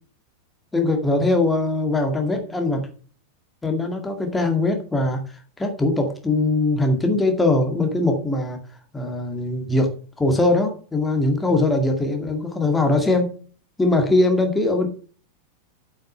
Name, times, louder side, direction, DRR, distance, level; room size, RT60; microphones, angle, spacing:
voice 1, 0.7-2.9 3.6-5.2 5.6-8.6 8.9-13.4 13.8-14.9, left 2 dB, 10° left, 4 dB, 2.1 m, -21 dB
8.2 x 6.4 x 5.8 m, 0.41 s
figure-of-eight pair, 90°, 0 cm